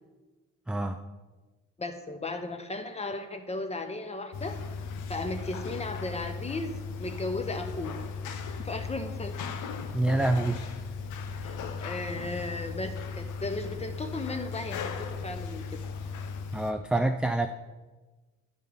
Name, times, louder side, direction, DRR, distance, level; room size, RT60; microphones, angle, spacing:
voice 1, 0.7-1.0 9.9-10.6 16.5-17.5, right 2 dB, 5° right, 7 dB, 0.3 m, -26 dB
voice 2, 1.8-4.6 5.1-7.9 8.6-9.4 11.4-11.5 11.8-15.6, left 2 dB, 20° left, 7 dB, 1.0 m, -35 dB
sound 1, 4.3-16.7, left 5 dB, 80° left, 0.8 m, -37 dB
10.0 x 5.4 x 5.2 m, 1.2 s
cardioid pair, 90°, 30 cm